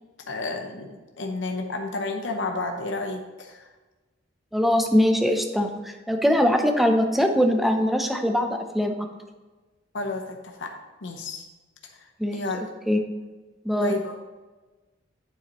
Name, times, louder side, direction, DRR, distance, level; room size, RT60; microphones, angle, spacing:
voice 1, 0.3-3.7 9.9-10.7 11.0-11.4 11.9-12.7 13.8-14.2, left 3 dB, 70° left, 3 dB, 0.8 m, -31 dB
voice 2, 4.5-9.0 12.2-12.4 12.9-13.0 13.6-13.9, equal, ahead, 4 dB, 0.6 m, -22 dB
8.8 x 7.1 x 3.0 m, 1.2 s
head